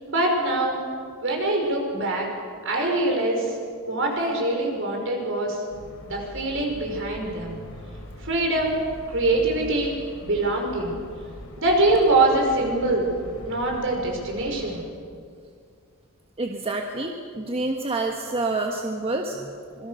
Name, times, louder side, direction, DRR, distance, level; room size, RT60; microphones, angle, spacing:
voice 1, 0.1-0.8 1.2-2.3 2.6-3.6 3.9-5.6 6.1-7.6 8.2-8.8 9.1-11.0 11.6-13.1 13.5-14.8, right 2 dB, 60° right, 1 dB, 5.9 m, -24 dB
sound 1, 5.7-14.8, left 1 dB, 80° left, 4.6 m, -42 dB
voice 2, 16.4-19.9, right 2 dB, 25° right, 2 dB, 1.4 m, -28 dB
26.0 x 23.0 x 6.7 m, 2.2 s
head